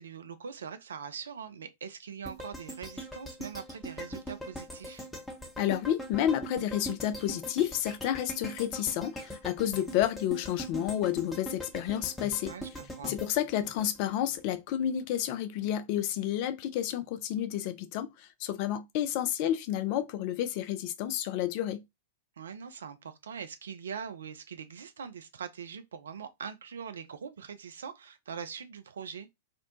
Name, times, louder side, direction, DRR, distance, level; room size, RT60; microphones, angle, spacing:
voice 1, 0.0-5.1 12.4-13.2 22.4-29.3, right 6 dB, 65° right, 0.4 m, -42 dB
sound 1, 2.2-14.4 14.8-14.9, equal, 5° left, 0.7 m, -42 dB
voice 2, 5.6-12.5 13.0-21.8, left 11 dB, 45° left, 0.4 m, -30 dB
2.5 x 2.0 x 2.9 m
figure-of-eight pair, 95°, 0 cm